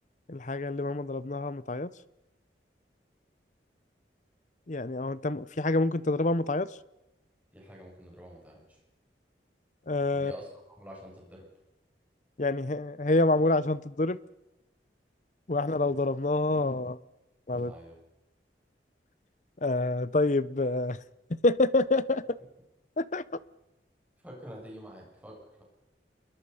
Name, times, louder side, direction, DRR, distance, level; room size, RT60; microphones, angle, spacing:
voice 1, 0.3-1.9 4.7-6.7 9.9-10.3 12.4-14.2 15.5-17.0 17.5-17.7 19.6-21.0 21.3-22.4 23.0-23.2, left 2 dB, 45° left, 18 dB, 0.7 m, -27 dB
voice 2, 7.5-8.8 10.1-11.5 17.5-18.0 24.2-25.6, equal, 10° right, -2 dB, 7.5 m, -47 dB
28.0 x 22.5 x 5.7 m, 0.95 s
head